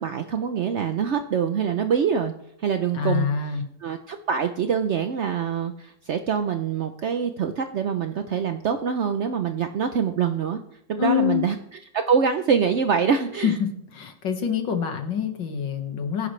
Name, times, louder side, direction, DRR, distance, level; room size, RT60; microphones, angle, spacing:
voice 1, 0.0-2.3 2.6-10.6 10.9-13.5, right 7 dB, 70° right, 7 dB, 0.6 m, -25 dB
voice 2, 2.9-3.6 11.0-11.4 13.4-13.7 13.9-16.3, left 8 dB, 70° left, 5 dB, 2.2 m, -25 dB
20.5 x 11.0 x 3.3 m, 0.73 s
omnidirectional pair, 2.1 m